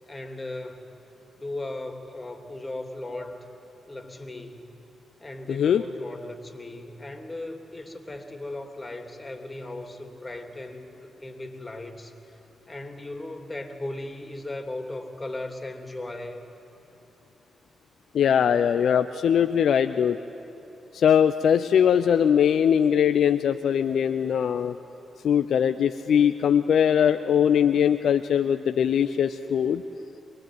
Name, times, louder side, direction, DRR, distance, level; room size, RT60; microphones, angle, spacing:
voice 1, 0.1-0.9 1.4-3.5 3.9-4.7 5.2-12.1 12.7-16.4, left 2 dB, 25° left, 5 dB, 3.1 m, -37 dB
voice 2, 5.5-5.8 18.1-20.2 20.9-24.8 25.2-29.8, left 8 dB, 70° left, 9 dB, 0.6 m, -21 dB
23.5 x 21.5 x 9.4 m, 3.0 s
hypercardioid pair, 40°, 0 cm